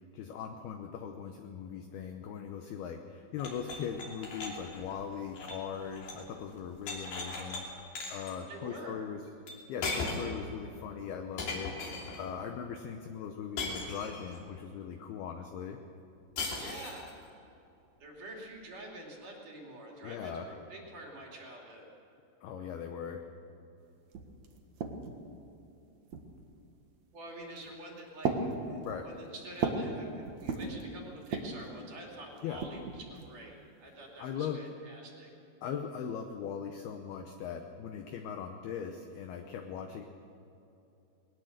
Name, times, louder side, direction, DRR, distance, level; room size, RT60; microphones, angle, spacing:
voice 1, 0.1-7.7 8.1-9.2 9.7-11.7 12.1-15.8 20.0-20.5 22.4-23.2 28.8-29.1 32.4-32.6 34.2-34.6 35.6-40.0, left 7 dB, 80° left, 5 dB, 2.3 m, -40 dB
sound 1, 3.4-6.3 6.6-7.6 8.0-8.3 9.5-9.6 9.8-10.4 11.4-12.2 13.6-14.4 16.4-17.1, left 3 dB, 50° left, 4.4 m, -38 dB
voice 2, 8.5-9.0 16.6-17.1 18.0-21.9 27.1-35.3, right 1 dB, 45° right, -1 dB, 3.7 m, -47 dB
sound 2, 23.8-23.9 24.1-25.3 26.1-26.6 27.4-27.8 28.2-29.9 30.3-30.8 31.2-31.7 32.4-33.4, right 4 dB, 75° right, 1.6 m, -36 dB
20.5 x 19.5 x 6.6 m, 2.8 s
omnidirectional pair, 5.7 m